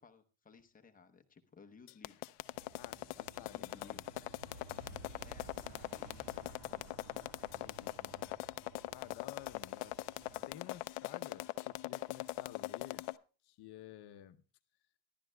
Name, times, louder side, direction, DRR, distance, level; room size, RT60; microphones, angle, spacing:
voice 1, 0.0-2.3 3.2-4.3 5.2-7.1 10.3-10.4, left 5 dB, 15° left, 0.8 m, -61 dB
sound 1, 1.9-13.1, left 19 dB, 90° left, 0.6 m, -41 dB
Aircraft, 2.5-10.5, right 1 dB, 90° right, 5.4 m, -55 dB
voice 2, 2.8-4.0 4.7-5.0 7.6-8.3 8.9-10.0 10.5-13.0 13.4-14.4, left 12 dB, 50° left, 0.8 m, -53 dB
sound 2, 5.2-13.1, equal, 45° right, 6.9 m, -72 dB
23.5 x 12.0 x 2.2 m
cardioid pair, 170°, 49 cm